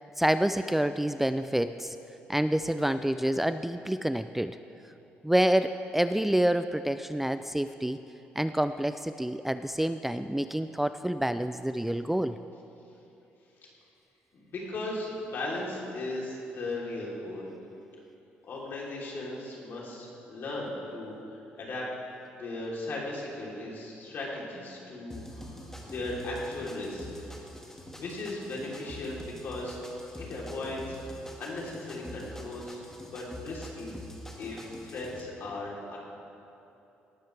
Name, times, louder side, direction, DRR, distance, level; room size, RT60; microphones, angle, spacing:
voice 1, 0.2-2.0 2.3-4.6 5.2-8.0 8.4-12.4, right 1 dB, 5° right, 11 dB, 0.3 m, -27 dB
voice 2, 14.3-17.4 18.5-21.9 22.3-27.1 28.0-29.8 30.2-31.0 31.4-32.8 33.1-33.9 34.4-36.0, left 2 dB, 60° left, -4 dB, 3.4 m, -37 dB
sound 1, 25.1-35.2, left 1 dB, 10° left, 1.7 m, -45 dB
18.0 x 12.5 x 3.4 m, 2.9 s
cardioid pair, 85°, 4 cm